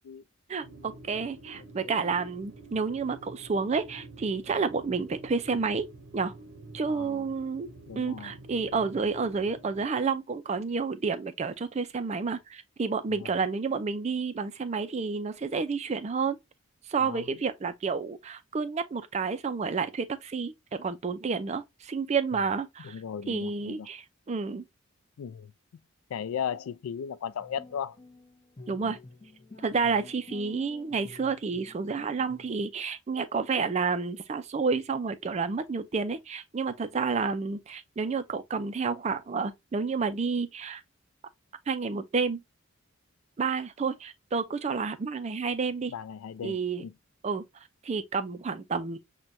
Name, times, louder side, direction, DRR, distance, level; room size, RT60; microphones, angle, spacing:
voice 1, 0.5-5.9 6.1-6.3 6.7-7.7 8.0-16.4 16.9-23.0 23.3-24.7 28.7-29.0 29.6-40.8 41.7-42.4 43.4-45.9 46.4-46.8 47.2-47.4 47.8-49.0, right 5 dB, 30° right, 0.3 m, -30 dB
sound 1, 0.6-9.9, right 2 dB, 65° right, 0.6 m, -48 dB
voice 2, 6.9-7.3 7.9-8.3 13.1-13.3 17.0-17.2 22.8-23.9 25.2-25.5 26.1-28.0 45.9-46.9, left 8 dB, 80° left, 0.3 m, -36 dB
sound 2, 27.4-32.6, left 2 dB, 25° left, 0.6 m, -50 dB
5.9 x 2.2 x 2.6 m
head